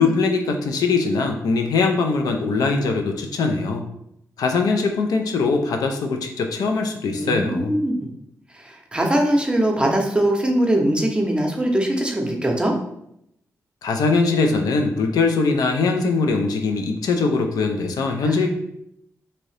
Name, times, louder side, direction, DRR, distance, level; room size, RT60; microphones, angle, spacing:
voice 1, 0.0-3.8 4.4-7.7 13.8-18.5, left 4 dB, 80° left, 4 dB, 0.4 m, -21 dB
voice 2, 7.2-8.1 8.5-12.7 18.2-18.5, right 1 dB, 15° right, 2 dB, 0.6 m, -21 dB
2.7 x 2.6 x 3.2 m, 0.77 s
cardioid pair, 70°, 6 cm